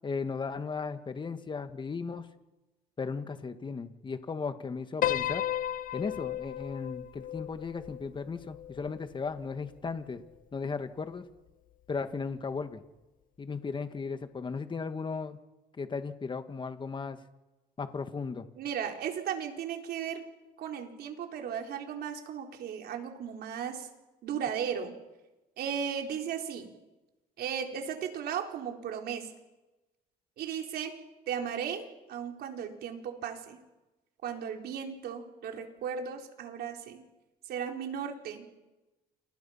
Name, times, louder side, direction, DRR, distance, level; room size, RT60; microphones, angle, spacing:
voice 1, 0.0-2.3 3.0-5.4 5.9-10.2 10.5-11.3 11.9-12.8 13.4-15.4 15.8-17.2 17.8-18.5, left 5 dB, 30° left, 9 dB, 1.9 m, -36 dB
Piano, 5.0-9.4, left 12 dB, 55° left, 0.8 m, -34 dB
voice 2, 18.6-20.2 20.6-23.9 24.2-24.9 25.6-26.7 27.4-29.3 30.4-31.0 31.3-33.6 34.2-37.1 37.5-38.5, right 8 dB, 70° right, 3 dB, 4.1 m, -36 dB
29.5 x 28.0 x 5.9 m, 1.1 s
cardioid pair, 110°, 17 cm